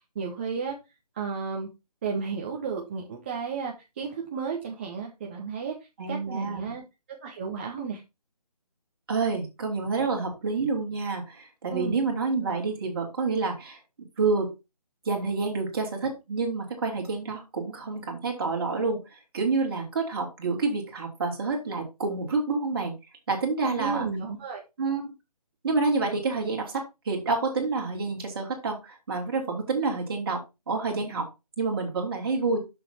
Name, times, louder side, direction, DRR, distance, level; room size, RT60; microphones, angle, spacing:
voice 1, 0.1-0.7 1.1-1.7 2.0-5.7 6.1-6.8 7.2-8.0 11.7-12.0 23.8-24.6, right 5 dB, 15° right, 0 dB, 0.8 m, -33 dB
voice 2, 6.0-6.6 9.1-13.8 14.2-14.5 15.0-22.9 23.3-24.1 24.8-25.1 25.6-26.8 27.0-30.4 30.7-31.3 31.6-32.6, right 4 dB, 35° right, 1 dB, 2.9 m, -28 dB
7.5 x 6.5 x 4.2 m, 0.25 s
figure-of-eight pair, 165°, 20 cm